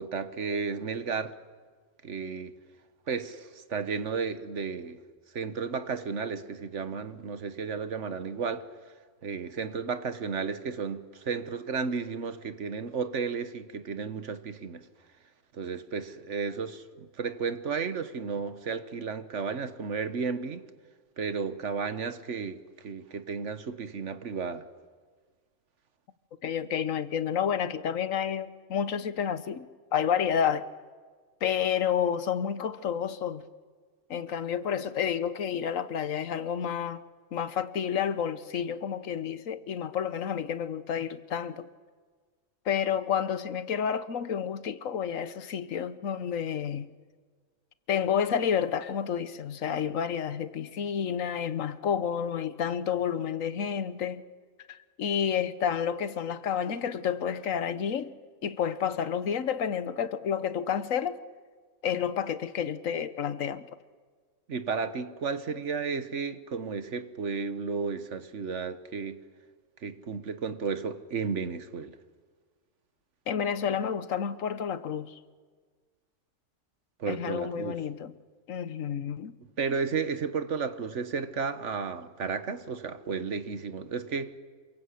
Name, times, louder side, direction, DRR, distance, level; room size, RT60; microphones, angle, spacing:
voice 1, 0.0-1.3 2.0-2.5 3.1-5.0 5.3-8.7 9.2-14.8 15.5-20.6 21.2-22.6 22.8-24.7 64.5-69.2 69.8-71.9 77.0-77.7 79.6-84.3, right 5 dB, 65° right, 1.5 m, -33 dB
voice 2, 26.4-29.7 29.9-30.7 31.4-33.4 34.1-37.0 37.3-41.7 42.7-46.9 47.9-54.2 55.0-58.1 58.4-61.2 61.8-63.7 73.3-75.1 77.1-78.1 78.5-79.3, left 8 dB, 80° left, 1.4 m, -30 dB
27.5 x 23.0 x 8.4 m
omnidirectional pair, 1.3 m